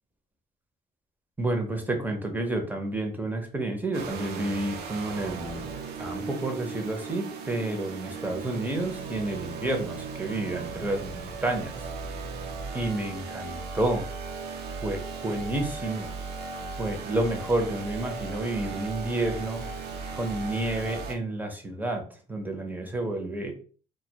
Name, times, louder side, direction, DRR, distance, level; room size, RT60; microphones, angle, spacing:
voice 1, 1.4-5.6 6.0-11.8 12.7-14.0 14.8-16.1 16.8-19.7 20.1-22.0 22.3-23.5, right 2 dB, 10° right, 3 dB, 0.6 m, -30 dB
sound 1, 3.9-21.2, right 4 dB, 75° right, 0.5 m, -37 dB
2.1 x 2.1 x 2.7 m, 0.40 s
cardioid pair, 110°, 17 cm